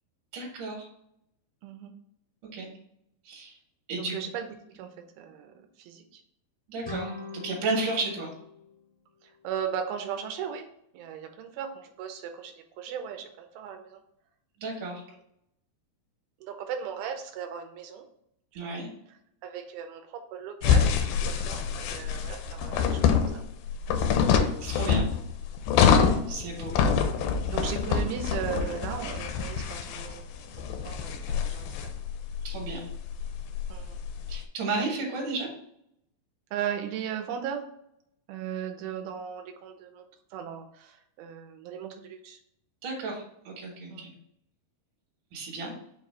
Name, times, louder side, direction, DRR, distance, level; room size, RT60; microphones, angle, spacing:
voice 1, 0.3-0.9 2.5-2.7 3.2-3.5 3.9-4.2 6.7-7.1 7.4-8.3 14.6-15.0 18.6-18.9 24.6-25.0 26.3-26.7 32.4-32.8 34.3-35.5 42.8-44.1 45.3-45.7, right 3 dB, 60° right, -2 dB, 2.6 m, -32 dB
voice 2, 1.6-1.9 3.9-4.5 4.7-4.9 5.2-6.2 9.4-10.7 10.9-14.0 16.4-18.1 18.6-18.8 19.4-23.4 25.9-26.2 27.5-30.2 30.9-31.2 31.5-31.7 33.7-34.0 36.5-37.6 38.3-40.0 40.3-42.4 43.9-44.1, right 8 dB, 80° right, 5 dB, 2.5 m, -37 dB
sound 1, 6.8-9.6, left 3 dB, 20° right, 0.7 m, -42 dB
sound 2, 20.6-34.4, left 7 dB, 85° left, 2.2 m, -26 dB
6.5 x 2.7 x 5.3 m, 0.74 s
omnidirectional pair, 4.6 m